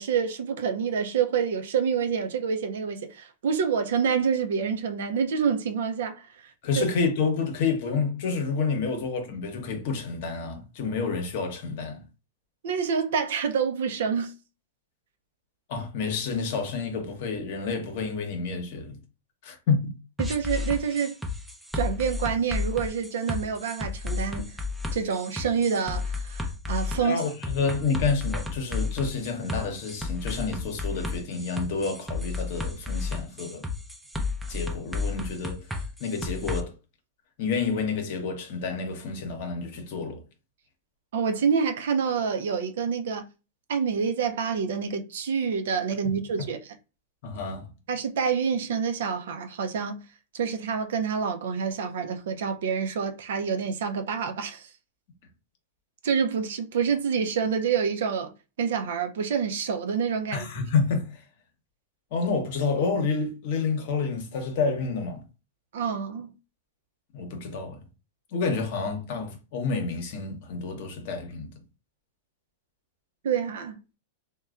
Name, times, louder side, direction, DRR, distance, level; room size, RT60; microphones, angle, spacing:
voice 1, 0.0-6.3 6.8-6.9 12.6-14.3 20.2-21.2 21.7-24.6 24.9-27.2 41.1-43.2 43.7-46.6 47.9-50.0 50.3-54.7 56.0-58.3 58.6-60.5 65.7-66.3 73.2-73.8, right 6 dB, 70° right, 0.5 m, -27 dB
voice 2, 6.6-12.0 15.7-19.0 19.4-20.0 27.0-33.7 34.5-36.7 37.4-40.2 47.2-47.7 60.3-61.2 62.1-65.2 67.1-67.8 68.3-71.5, left 4 dB, 60° left, 0.8 m, -29 dB
sound 1, 20.2-36.6, left 3 dB, 5° right, 0.5 m, -32 dB
3.0 x 2.2 x 2.4 m
hypercardioid pair, 110°, 0 cm